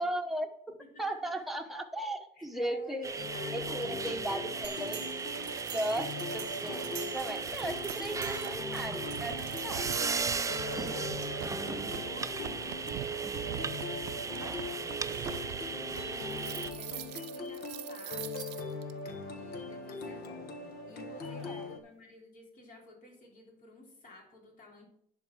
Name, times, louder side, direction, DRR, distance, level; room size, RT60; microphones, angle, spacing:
voice 1, 0.0-3.1 3.5-5.0 5.7-10.0 10.7-11.0 21.4-21.6, right 1 dB, ahead, 3 dB, 1.1 m, -37 dB
voice 2, 0.8-1.5 2.4-3.7 4.1-5.3 10.7-12.6 13.4-18.3 19.3-24.9, left 2 dB, 50° left, 0 dB, 3.6 m, -52 dB
sound 1, 3.0-16.7, right 5 dB, 20° right, 0.4 m, -37 dB
sound 2, 3.2-21.8, left 3 dB, 70° left, 1.5 m, -41 dB
sound 3, 4.6-18.9, right 13 dB, 90° right, 0.6 m, -44 dB
10.5 x 4.3 x 6.3 m, 0.71 s
cardioid pair, 110°, 17 cm